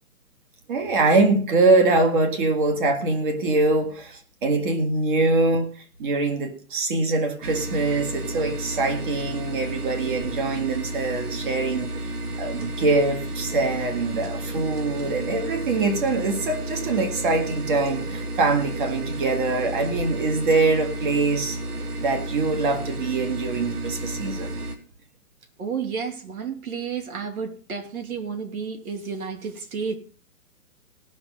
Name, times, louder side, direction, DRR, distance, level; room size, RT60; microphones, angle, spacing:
voice 1, 0.7-5.7 6.0-12.0 12.4-21.6 22.0-24.6, right 3 dB, 35° right, 6 dB, 1.8 m, -23 dB
sound 1, 7.4-24.8, right 1 dB, 80° right, 2.7 m, -32 dB
voice 2, 25.6-30.0, right 6 dB, 65° right, 6 dB, 2.8 m, -31 dB
17.5 x 6.3 x 5.3 m, 0.42 s
hypercardioid pair, 165°, 46 cm